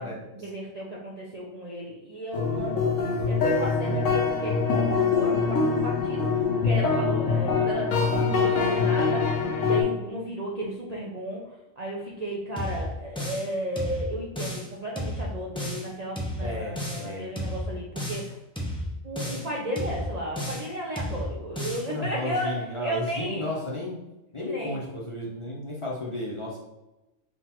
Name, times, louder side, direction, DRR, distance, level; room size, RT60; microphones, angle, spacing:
voice 1, 0.0-2.9 3.2-9.2 9.6-11.4 11.8-18.4 19.0-23.5 24.4-24.8, equal, 45° right, -4 dB, 0.5 m, -34 dB
sound 1, 2.3-9.8, left 5 dB, 70° left, 1.1 m, -24 dB
sound 2, 12.6-13.5 13.8-14.7 15.0-15.9 16.2-17.1 17.4-18.3 18.6-19.5 19.8-20.7 21.0-21.9, equal, 10° left, 0.3 m, -32 dB
voice 2, 16.4-17.3 21.9-24.0 24.3-26.6, left 1 dB, 30° left, -6 dB, 0.8 m, -33 dB
3.8 x 2.4 x 4.3 m, 0.99 s
omnidirectional pair, 1.4 m